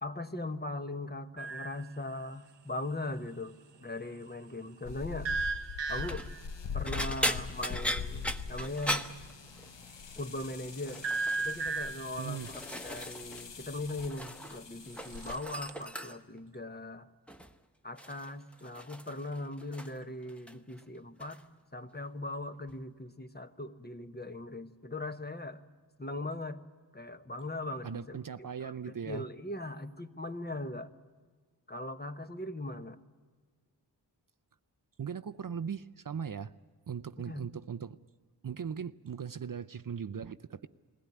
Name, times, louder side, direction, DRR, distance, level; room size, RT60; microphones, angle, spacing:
voice 1, 0.0-5.3 5.9-6.3 6.7-9.1 10.2-11.1 11.4-17.1 17.8-21.4 21.7-25.6 26.0-26.6 26.9-30.9 31.7-33.0 37.2-37.5, left 2 dB, 25° left, 8 dB, 1.1 m, -40 dB
sound 1, 1.4-1.9 5.2-6.5 11.0-12.2 14.9-15.8, right 4 dB, 80° right, 0.8 m, -35 dB
sound 2, 4.8-15.4, left 6 dB, 80° left, 0.9 m, -43 dB
sound 3, 5.9-6.3 6.8-9.9 10.2-10.5 10.9-11.4 12.0-13.5 13.7-14.6 14.9-16.4 17.3-17.6 18.0-20.0 20.3-20.8 21.2-21.4 22.7-22.8, equal, 5° left, 1.1 m, -38 dB
voice 2, 12.2-12.5 27.8-29.3 35.0-36.5 36.9-38.0 38.4-40.7, right 7 dB, 50° right, 13 dB, 0.6 m, -39 dB
21.5 x 16.5 x 9.5 m, 1.5 s
wide cardioid pair, 70°, 43 cm